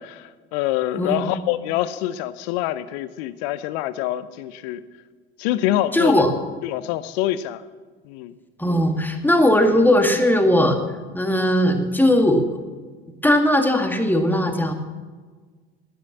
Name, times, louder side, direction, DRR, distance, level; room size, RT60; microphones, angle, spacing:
voice 1, 0.0-4.8 5.4-6.2 6.6-7.6 8.0-8.3, left 13 dB, 70° left, 15 dB, 0.8 m, -25 dB
voice 2, 1.0-1.3 5.9-6.3 8.6-10.8 11.1-12.6 13.2-14.7, left 1 dB, 5° left, 5 dB, 2.0 m, -18 dB
12.5 x 10.5 x 7.3 m, 1.4 s
hypercardioid pair, 65°, 33 cm